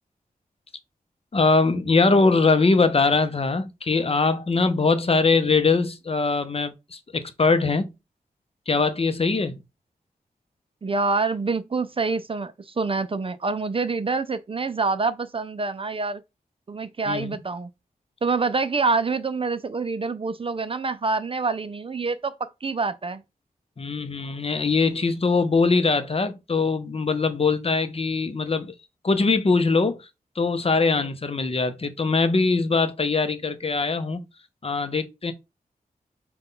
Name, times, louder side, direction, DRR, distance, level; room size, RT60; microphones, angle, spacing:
voice 1, 1.3-7.9 8.7-9.5 17.1-17.4 23.8-28.7 29.0-30.0 30.4-34.2 34.6-35.3, left 4 dB, 40° left, 0.6 m, -22 dB
voice 2, 10.8-16.2 16.7-17.7 18.2-23.2, right 4 dB, 35° right, 0.4 m, -26 dB
5.3 x 2.3 x 3.7 m
wide cardioid pair, 75°, 15 cm